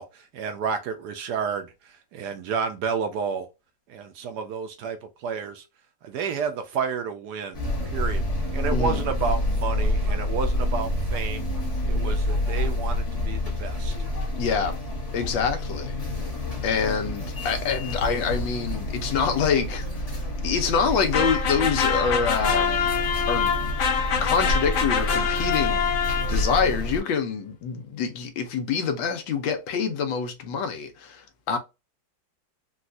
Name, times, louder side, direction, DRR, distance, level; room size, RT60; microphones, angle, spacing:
voice 1, 0.0-3.5 3.9-5.6 6.0-8.2 8.5-11.5 11.8-13.9, right 6 dB, 70° right, 1.0 m, -31 dB
sound 1, 7.5-27.0, left 1 dB, 30° left, 0.7 m, -28 dB
voice 2, 8.7-9.0 14.4-14.8 15.1-15.9 16.6-19.8 20.4-22.9 23.3-23.5 24.2-31.6, left 6 dB, 85° left, 1.5 m, -26 dB
sound 2, 21.1-26.7, left 7 dB, 70° left, 0.7 m, -25 dB
4.0 x 2.3 x 2.5 m
omnidirectional pair, 2.0 m